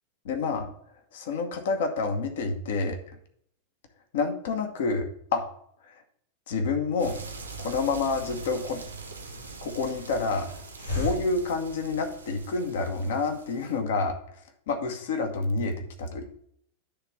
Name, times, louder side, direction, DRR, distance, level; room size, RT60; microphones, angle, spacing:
voice 1, 0.2-0.7 1.1-3.0 4.1-5.4 5.9-6.0 6.5-7.2 7.6-8.8 9.6-10.5 10.9-14.1 14.7-16.2, left 4 dB, 55° left, 6 dB, 1.0 m, -28 dB
Hiss, 7.0-12.5, left 2 dB, 85° left, 1.6 m, -39 dB
sound 1, 7.0-13.8, right 4 dB, 80° right, 1.1 m, -43 dB
10.5 x 3.5 x 6.0 m, 0.67 s
figure-of-eight pair, 90°, 0 cm